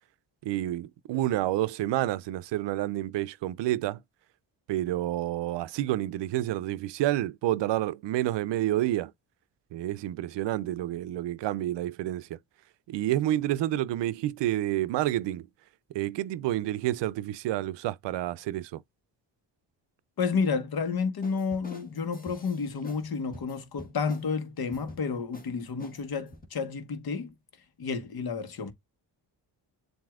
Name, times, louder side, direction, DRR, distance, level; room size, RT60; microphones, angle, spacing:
voice 1, 0.4-4.0 4.7-9.1 9.7-12.4 12.9-15.5 15.9-18.8, right 14 dB, 80° right, 0.5 m, -29 dB
voice 2, 20.2-27.3 27.8-28.7, left 5 dB, 55° left, 1.3 m, -31 dB
sound 1, 21.2-23.1 23.3-24.3 24.7-25.0 25.3-25.5 25.8-26.5, left 2 dB, 20° left, 1.5 m, -47 dB
7.4 x 2.7 x 2.4 m
cardioid pair, 90°, 43 cm